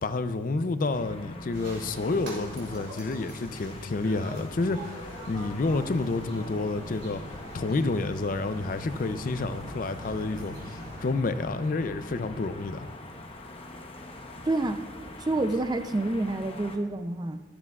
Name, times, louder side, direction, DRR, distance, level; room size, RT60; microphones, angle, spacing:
voice 1, 0.0-7.2 7.5-12.9, left 3 dB, 45° left, 11 dB, 0.4 m, -29 dB
sound 1, 0.9-16.8, left 1 dB, 30° left, 0.9 m, -44 dB
sound 2, 1.5-11.1, right 1 dB, 75° right, 3.3 m, -45 dB
sound 3, 6.5-12.5, equal, 5° left, 2.5 m, -45 dB
voice 2, 14.4-14.9 15.2-17.4, right 2 dB, 20° right, 8 dB, 0.4 m, -28 dB
16.0 x 12.0 x 2.4 m, 1.5 s
head